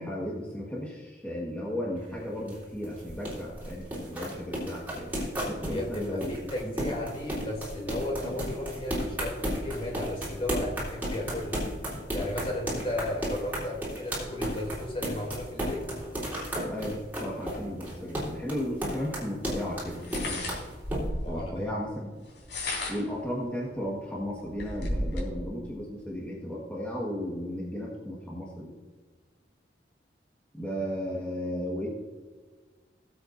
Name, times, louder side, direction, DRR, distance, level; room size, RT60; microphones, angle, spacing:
voice 1, 0.0-5.1 5.4-6.7 16.7-20.4 21.3-22.1 22.9-28.7 30.5-31.9, equal, 10° left, -5 dB, 1.6 m, -35 dB
sound 1, 2.0-21.0, equal, 10° right, 3.7 m, -34 dB
voice 2, 5.6-11.6 12.1-15.9 21.2-21.7, left 1 dB, 30° left, -1 dB, 2.9 m, -35 dB
sound 2, 18.6-18.7 20.0-21.3 22.3-23.2 23.8-23.9 24.2-25.3, left 1 dB, 75° left, 3.8 m, -33 dB
19.0 x 8.0 x 2.7 m, 1.4 s
head